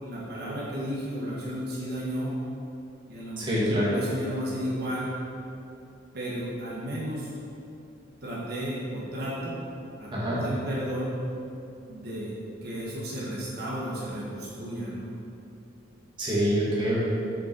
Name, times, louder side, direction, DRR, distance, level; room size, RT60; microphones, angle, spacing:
voice 1, 0.0-2.3 3.1-5.1 6.1-7.3 8.2-9.5 10.0-11.1 11.9-12.3 12.6-15.1, equal, 55° right, -7 dB, 1.6 m, -33 dB
voice 2, 3.4-3.9 10.1-10.4 16.2-17.0, equal, 25° right, -7 dB, 1.9 m, -25 dB
7.8 x 6.4 x 4.6 m, 2.7 s
head